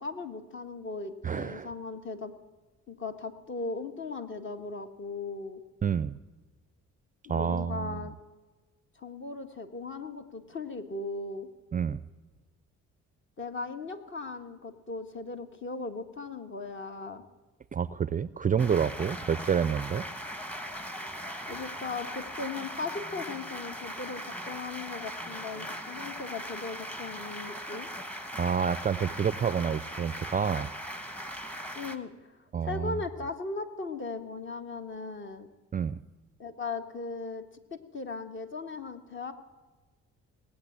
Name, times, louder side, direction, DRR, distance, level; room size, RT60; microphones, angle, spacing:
voice 1, 0.0-2.3 2.9-5.6 7.3-8.2 9.0-11.5 13.4-17.2 21.5-27.9 31.7-35.5 36.4-37.5 37.7-39.3, left 3 dB, 40° left, 7 dB, 1.7 m, -38 dB
voice 2, 1.2-1.7 5.8-6.2 7.3-8.0 11.7-12.0 17.7-20.0 28.4-30.7 32.5-33.0 35.7-36.0, right 7 dB, 30° right, 16 dB, 0.4 m, -28 dB
sound 1, 18.6-32.0, equal, 5° left, 1.3 m, -39 dB
18.5 x 8.6 x 8.7 m, 1.2 s
cardioid pair, 90°, 30 cm